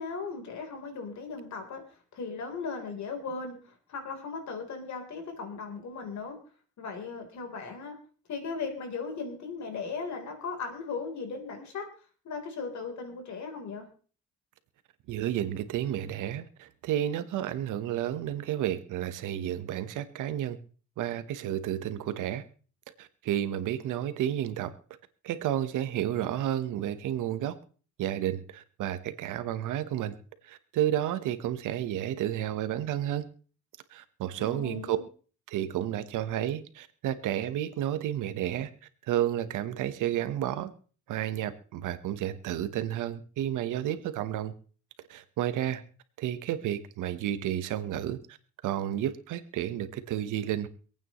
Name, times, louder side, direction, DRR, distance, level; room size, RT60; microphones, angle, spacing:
voice 1, 0.0-1.8 2.1-6.4 6.8-8.0 8.3-11.9 12.2-13.9 34.4-35.0, left 4 dB, 65° left, 4 dB, 3.8 m, -37 dB
voice 2, 15.1-20.6 21.0-22.4 23.0-24.7 25.2-27.6 28.0-30.1 30.4-33.3 33.9-35.0 35.5-38.7 39.0-40.7 41.1-44.5 45.1-45.8 46.2-48.4 48.6-50.7, right 11 dB, 85° right, 11 dB, 1.2 m, -31 dB
26.0 x 9.0 x 3.1 m, 0.40 s
cardioid pair, 90°, 30 cm